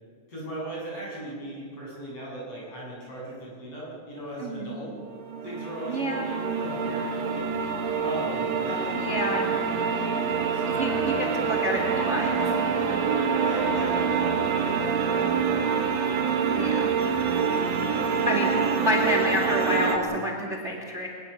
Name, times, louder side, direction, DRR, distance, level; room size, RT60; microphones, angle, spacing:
voice 1, 0.3-4.9 5.4-7.4 8.0-12.2 13.4-14.2, right 1 dB, 50° left, -4 dB, 9.2 m, -37 dB
voice 2, 4.4-4.7 5.9-6.3 9.0-9.5 10.7-11.1 11.4-12.5 16.5-16.8 18.3-18.5 18.8-21.1, equal, 25° right, 1 dB, 2.4 m, -28 dB
sound 1, 5.0-20.0, right 6 dB, 60° right, 2.8 m, -26 dB
23.0 x 21.0 x 7.3 m, 2.1 s
omnidirectional pair, 3.6 m